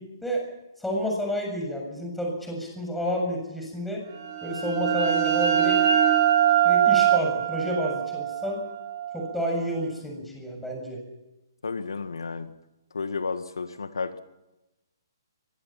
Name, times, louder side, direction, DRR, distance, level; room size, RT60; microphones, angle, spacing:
voice 1, 0.8-4.0 4.4-5.8 6.6-8.6 9.1-11.0, equal, 5° left, 0 dB, 7.4 m, -30 dB
sound 1, 4.2-9.7, right 10 dB, 45° right, 3.8 m, -23 dB
voice 2, 11.6-12.5 12.9-14.2, left 4 dB, 85° left, 10 dB, 2.0 m, -32 dB
23.5 x 23.0 x 6.0 m, 0.98 s
hypercardioid pair, 135°, 2 cm